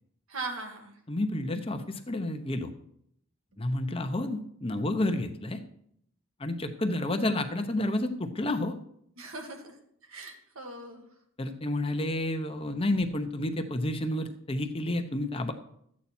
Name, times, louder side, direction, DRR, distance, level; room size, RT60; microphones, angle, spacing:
voice 1, 0.3-1.0 9.2-9.8 10.0-11.0, right 3 dB, 80° right, 3 dB, 2.0 m, -39 dB
voice 2, 1.1-2.7 3.6-5.6 6.4-8.7 11.4-15.5, left 1 dB, 25° left, 7 dB, 0.8 m, -30 dB
13.0 x 8.5 x 4.4 m, 0.70 s
head